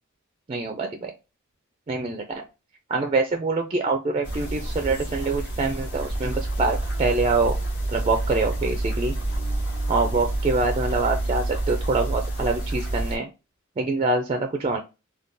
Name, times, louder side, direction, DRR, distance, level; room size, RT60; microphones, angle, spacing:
voice 1, 0.5-1.1 1.9-2.4 2.9-7.6 7.9-9.1 9.9-13.3 13.8-14.8, right 3 dB, 30° right, 4 dB, 0.3 m, -25 dB
sound 1, 4.2-13.2, right 1 dB, 55° left, 1.4 m, -28 dB
3.6 x 2.2 x 2.5 m, 0.28 s
head